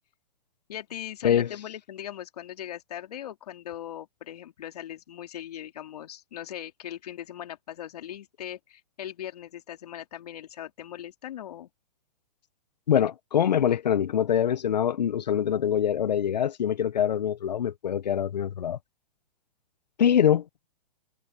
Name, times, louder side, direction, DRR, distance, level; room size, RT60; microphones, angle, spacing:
voice 1, 0.7-11.7, left 11 dB, 65° left, 3.0 m, -39 dB
voice 2, 12.9-18.8 20.0-20.4, left 9 dB, 85° left, 0.8 m, -24 dB
hypercardioid pair, 135°, 21 cm